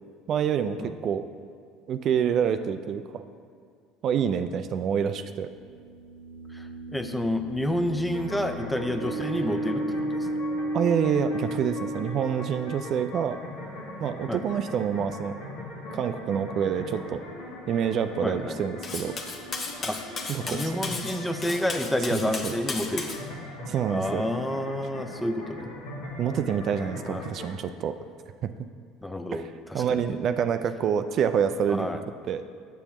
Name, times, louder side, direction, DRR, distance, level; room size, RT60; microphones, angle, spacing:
voice 1, 0.3-1.3 1.9-3.2 4.0-5.5 10.7-13.4 14.0-15.3 15.9-17.2 17.7-19.2 20.3-20.7 22.1-22.5 23.7-24.3 26.2-28.0 28.4-28.5 29.3-29.5 29.7-31.9 32.2-32.4, right 8 dB, 50° right, 9 dB, 0.3 m, -27 dB
sound 1, 5.8-12.6, right 1 dB, 50° left, 1.6 m, -33 dB
voice 2, 6.5-10.3 14.3-14.4 18.2-18.6 19.8-20.0 20.4-23.1 23.9-25.7 27.0-27.2 29.0-30.2 31.7-32.0, left 1 dB, 5° left, 8 dB, 0.5 m, -29 dB
sound 2, 8.1-27.5, left 1 dB, 80° left, 1.4 m, -40 dB
Cutlery silverware, 18.8-23.2, left 3 dB, 35° left, 0.8 m, -35 dB
6.9 x 6.8 x 3.0 m, 2.2 s
hypercardioid pair, 70°, 0 cm